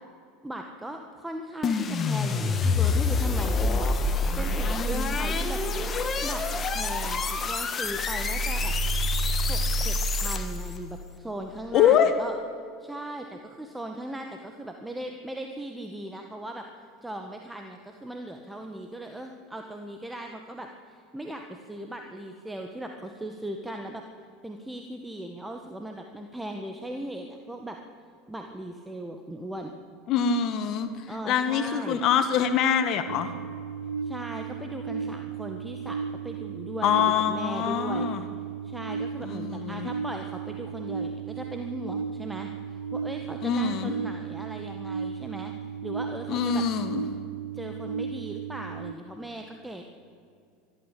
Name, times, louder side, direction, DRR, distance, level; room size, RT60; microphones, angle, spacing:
voice 1, 0.4-3.9 4.1-5.6 6.2-6.5 6.7-8.7 9.5-12.3 12.8-16.6 17.0-24.0 24.4-27.8 28.3-29.7 31.1-32.0 34.0-36.9 37.3-38.1 38.6-45.5 45.8-46.6 47.5-49.8, right 1 dB, 10° right, 4 dB, 1.7 m, -38 dB
sound 1, 1.6-10.7, left 2 dB, 30° left, 1.8 m, -26 dB
voice 2, 11.7-12.1 30.1-33.3 36.8-38.2 39.2-39.9 43.4-43.9 46.3-47.0, left 8 dB, 50° left, 9 dB, 1.6 m, -24 dB
sound 2, 33.1-48.9, right 6 dB, 85° right, 0.8 m, -35 dB
24.0 x 13.0 x 8.6 m, 2.4 s
hypercardioid pair, 85°, 0 cm